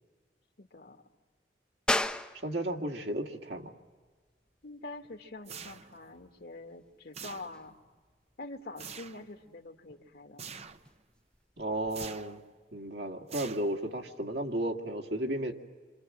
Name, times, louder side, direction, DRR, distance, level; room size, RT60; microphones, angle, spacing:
voice 1, 0.6-1.0 4.6-7.8 8.4-10.4, left 2 dB, 60° left, 5 dB, 1.9 m, -45 dB
sound 1, 1.9-12.1, left 1 dB, 5° left, 0.7 m, -40 dB
voice 2, 2.4-3.7 11.6-12.4 12.7-15.5, right 1 dB, 70° right, 2 dB, 2.3 m, -33 dB
sound 2, 5.4-6.1 7.1-7.8 8.8-9.3 10.4-10.9 11.9-12.4 13.3-14.0, right 6 dB, 35° right, 0.8 m, -45 dB
28.5 x 26.5 x 7.6 m, 1.4 s
head